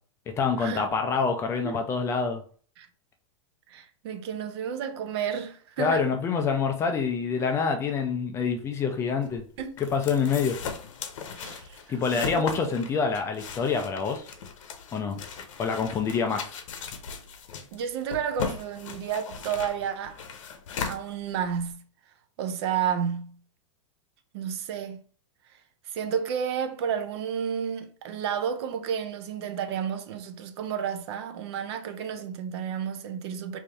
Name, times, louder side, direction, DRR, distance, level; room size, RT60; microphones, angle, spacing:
voice 1, 0.4-2.4 5.8-9.4 9.8-10.6 11.9-14.3 14.9-15.2 15.6-16.5, left 5 dB, 15° left, 0.4 m, -26 dB
voice 2, 3.7-6.1 9.6-9.8 11.3-12.5 17.7-20.2 20.8-21.8 22.4-23.4 24.3-25.0 25.9-33.6, right 8 dB, 55° right, 0.6 m, -31 dB
sound 1, 9.2-21.7, left 6 dB, 80° left, 0.7 m, -38 dB
3.3 x 2.6 x 3.4 m
supercardioid pair, 150°, 16 cm